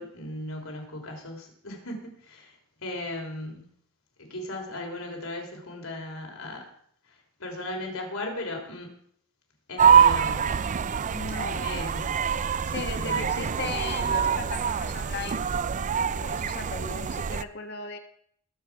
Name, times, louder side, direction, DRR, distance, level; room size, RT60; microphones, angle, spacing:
voice 1, 0.0-3.7 4.2-6.7 7.4-8.9 9.7-10.6 11.6-12.2 12.6-12.7 13.0-13.4, left 1 dB, 80° left, 2 dB, 3.4 m, -37 dB
sound 1, 9.8-17.4, right 7 dB, 35° right, 0.4 m, -24 dB
voice 2, 11.1-11.8 12.6-15.5 16.1-18.0, left 4 dB, 55° left, 5 dB, 1.5 m, -37 dB
19.5 x 7.7 x 4.8 m, 0.64 s
head